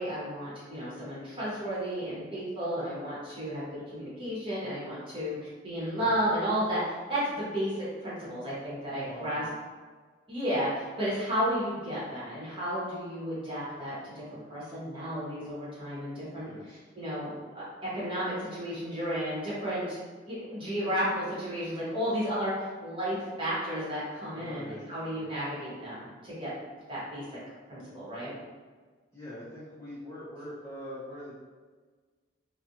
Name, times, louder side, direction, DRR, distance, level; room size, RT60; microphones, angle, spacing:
voice 1, 0.0-9.4 10.3-16.5 16.9-17.6 17.9-20.0 20.3-27.2 27.7-28.3, equal, 25° right, -9 dB, 0.9 m, -33 dB
voice 2, 8.9-9.5 16.4-16.9 24.3-25.3 29.1-31.3, left 1 dB, 15° left, -10 dB, 0.4 m, -43 dB
2.4 x 2.1 x 2.7 m, 1.4 s
head